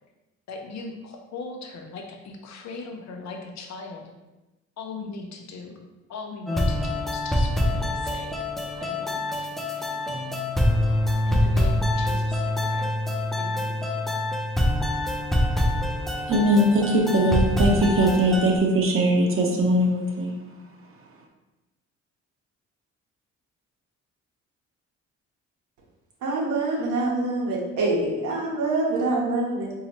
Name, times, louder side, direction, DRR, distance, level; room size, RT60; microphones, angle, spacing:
voice 1, 0.5-4.0 4.8-5.8 6.1-8.4 8.7-9.5 9.7-10.4 11.3-12.9 13.4-13.8, left 4 dB, 65° left, 3 dB, 0.7 m, -39 dB
sound 1, 6.5-18.6, left 1 dB, ahead, 0.4 m, -25 dB
voice 2, 16.3-20.4, right 1 dB, 45° right, 0 dB, 0.8 m, -21 dB
voice 3, 26.2-29.7, right 2 dB, 85° right, -4 dB, 0.9 m, -25 dB
4.1 x 2.8 x 2.9 m, 1.1 s
cardioid pair, 90°, 30 cm